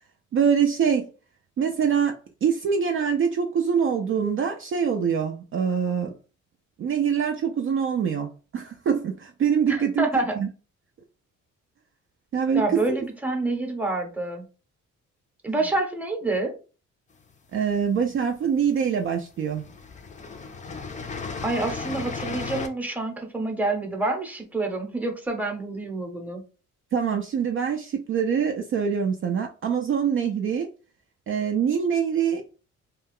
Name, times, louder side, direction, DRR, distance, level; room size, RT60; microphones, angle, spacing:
voice 1, 0.3-1.1 1.6-6.1 6.8-10.0 10.4-10.5 12.3-13.0 17.5-19.6 26.9-30.7 31.3-32.6, right 7 dB, 45° right, 0.4 m, -24 dB
voice 2, 9.7-10.4 12.5-14.5 15.4-16.5 21.4-26.4, right 2 dB, 5° right, 0.8 m, -27 dB
sound 1, 17.3-18.2 19.0-19.2 19.5-22.7, left 4 dB, 25° left, 0.4 m, -35 dB
2.4 x 2.2 x 3.4 m
cardioid pair, 90°, 30 cm